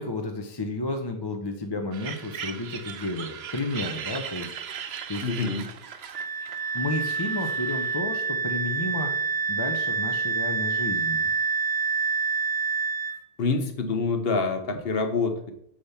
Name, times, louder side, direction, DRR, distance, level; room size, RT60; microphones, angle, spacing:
voice 1, 0.0-4.5 5.1-5.3 6.7-9.1 9.5-11.3, left 2 dB, 25° left, 4 dB, 0.7 m, -32 dB
sound 1, 1.9-8.0, right 8 dB, 75° right, 1.0 m, -38 dB
voice 2, 5.2-5.6 13.4-15.5, left 4 dB, 65° left, 8 dB, 1.2 m, -26 dB
Wind instrument woodwind instrument, 6.1-13.2, right 5 dB, 45° right, 0.5 m, -27 dB
6.8 x 6.5 x 5.6 m, 0.73 s
omnidirectional pair, 1.1 m